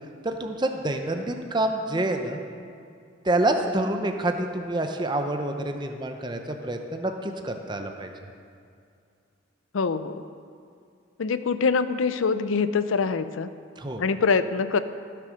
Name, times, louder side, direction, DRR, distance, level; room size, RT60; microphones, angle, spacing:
voice 1, 0.2-2.4 3.2-8.1 13.8-14.0, right 1 dB, 20° right, 5 dB, 0.7 m, -27 dB
voice 2, 9.7-10.2 11.2-13.5 14.0-14.8, left 5 dB, 85° left, 12 dB, 0.5 m, -24 dB
14.5 x 6.8 x 6.4 m, 2.4 s
head